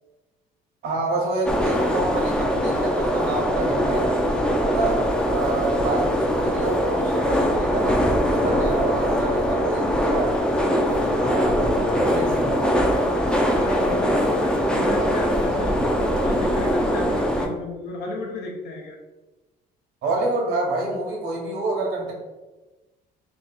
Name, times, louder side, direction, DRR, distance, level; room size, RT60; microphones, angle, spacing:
voice 1, 0.8-4.1 4.6-5.0 5.3-10.4 10.8-12.6 20.0-22.1, right 2 dB, 80° right, 0 dB, 1.1 m, -28 dB
sound 1, 1.5-17.5, equal, 5° left, 0.4 m, -22 dB
voice 2, 13.4-19.0, left 2 dB, 80° left, 1 dB, 0.8 m, -34 dB
3.0 x 2.4 x 3.9 m, 1.1 s
cardioid pair, 110°, 17 cm